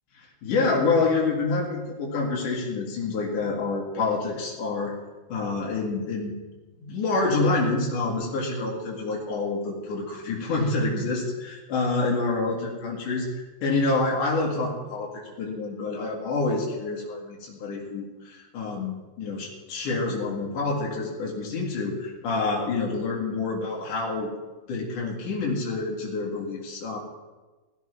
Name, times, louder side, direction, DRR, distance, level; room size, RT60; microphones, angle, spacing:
voice 1, 0.2-5.0 5.3-6.3 6.8-24.3 24.7-27.0, left 3 dB, 75° left, -2 dB, 3.6 m, -27 dB
16.5 x 14.0 x 3.4 m, 1.2 s
omnidirectional pair, 3.6 m